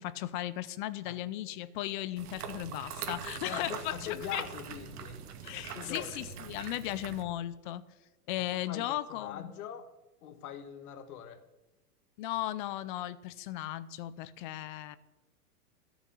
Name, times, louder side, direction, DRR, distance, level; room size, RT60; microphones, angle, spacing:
voice 1, 0.0-4.4 5.4-7.8 8.3-9.5 12.2-15.0, left 14 dB, 35° left, 15 dB, 0.6 m, -36 dB
sound 1, 2.2-7.2, right 7 dB, 75° right, 2.3 m, -42 dB
voice 2, 3.4-5.2 5.7-6.4 8.7-9.9 10.2-11.4, left 9 dB, 70° left, 9 dB, 1.7 m, -42 dB
16.0 x 7.1 x 9.9 m, 1.1 s
supercardioid pair, 150°, 46 cm